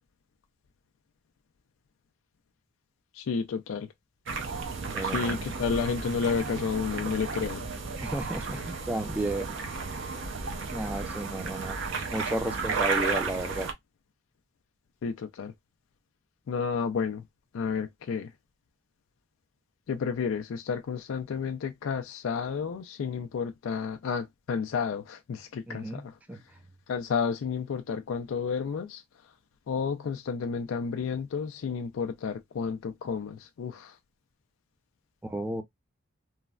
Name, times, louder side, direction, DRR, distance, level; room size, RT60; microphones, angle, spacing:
voice 1, 3.2-3.9 5.0-7.7 15.0-15.5 16.5-17.2 17.5-18.3 19.9-26.0 26.9-29.0 29.7-33.9, left 6 dB, 90° left, 0.3 m, -31 dB
sound 1, 4.3-13.7, right 4 dB, 75° right, 0.6 m, -33 dB
voice 2, 4.9-5.5 8.0-9.5 10.7-11.8 12.1-13.7 25.7-26.0 26.3-26.4 35.2-35.6, right 1 dB, 10° right, 0.3 m, -33 dB
3.1 x 2.1 x 2.3 m
head